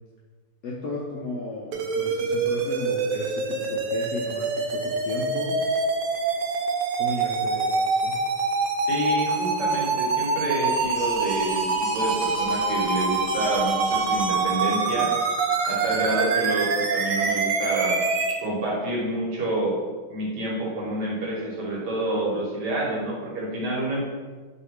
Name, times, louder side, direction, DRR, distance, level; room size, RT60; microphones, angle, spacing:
voice 1, 0.6-5.6 7.0-8.2 16.0-16.1, left 2 dB, 75° left, -4 dB, 0.8 m, -34 dB
sound 1, 1.7-18.3, right 4 dB, 90° right, 1.3 m, -25 dB
voice 2, 8.9-15.1 15.7-18.0 18.4-19.8 20.1-24.1, right 1 dB, 65° right, -4 dB, 1.5 m, -28 dB
sound 2, 10.7-14.6, left 1 dB, 55° left, 1.1 m, -41 dB
3.1 x 2.8 x 4.3 m, 1.4 s
omnidirectional pair, 2.0 m